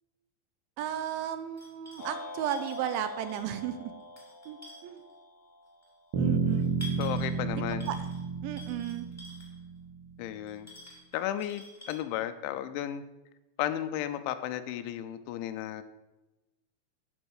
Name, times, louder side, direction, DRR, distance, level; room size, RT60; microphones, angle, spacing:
voice 1, 0.8-3.9 4.5-5.0 6.2-6.7 7.9-8.1 8.4-9.1, right 10 dB, 80° right, 10 dB, 3.0 m, -34 dB
sound 1, 0.9-1.1 1.6-2.2 2.5-3.6 4.0-5.1 5.8-5.9 6.5-7.4 7.8-8.2 8.6-9.6 10.5-12.0, left 1 dB, 10° left, 0.9 m, -49 dB
sound 2, 2.0-6.3, left 1 dB, 65° left, 1.9 m, -45 dB
sound 3, 6.1-10.1, right 6 dB, 60° right, 2.5 m, -31 dB
voice 2, 7.0-7.9 10.2-10.7 11.1-13.0 13.6-15.8, left 11 dB, 85° left, 11 dB, 2.9 m, -34 dB
12.0 x 6.3 x 6.4 m, 1.0 s
omnidirectional pair, 5.5 m